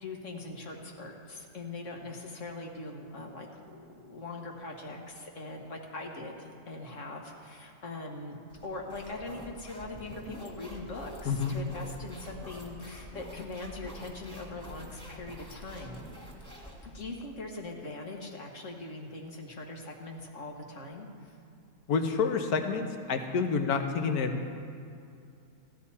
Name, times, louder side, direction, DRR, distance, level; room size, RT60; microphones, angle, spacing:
voice 1, 0.0-16.0 16.8-21.4, left 2 dB, 50° left, 1 dB, 1.7 m, -41 dB
sound 1, 8.5-17.3, equal, 5° left, 2.0 m, -47 dB
voice 2, 21.9-24.4, left 5 dB, 70° left, 5 dB, 1.4 m, -28 dB
16.0 x 12.0 x 4.2 m, 2.5 s
omnidirectional pair, 1.7 m